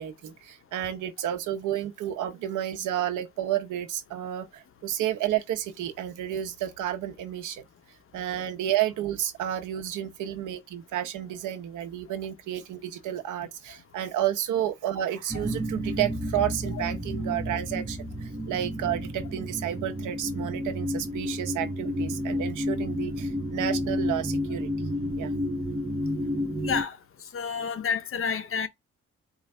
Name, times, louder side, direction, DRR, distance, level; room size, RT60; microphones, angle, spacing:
voice 1, 0.0-7.6 8.1-24.7 25.1-25.3, right 11 dB, 85° right, 1.0 m, -31 dB
sound 1, 15.3-26.8, left 1 dB, 10° right, 0.6 m, -31 dB
voice 2, 26.6-27.0 27.3-28.7, left 6 dB, 45° left, 0.8 m, -29 dB
4.6 x 2.4 x 3.2 m
cardioid pair, 90°, 30 cm